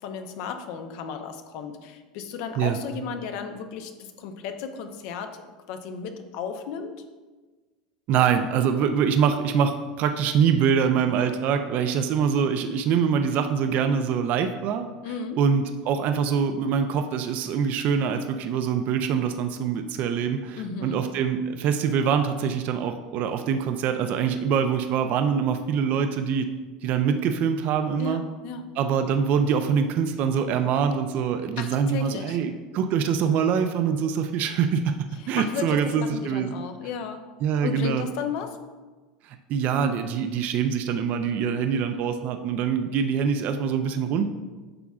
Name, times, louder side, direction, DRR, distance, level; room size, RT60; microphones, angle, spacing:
voice 1, 0.0-7.0 15.0-15.4 20.6-21.0 28.0-28.6 31.6-32.4 35.4-37.2 37.6-38.6, left 6 dB, 65° left, 7 dB, 0.8 m, -34 dB
voice 2, 8.1-14.9 15.4-26.5 26.8-28.2 28.8-36.5 37.4-38.0 39.2-44.3, right 7 dB, 55° right, 7 dB, 0.5 m, -24 dB
8.6 x 5.9 x 2.4 m, 1.3 s
hypercardioid pair, 95°, 3 cm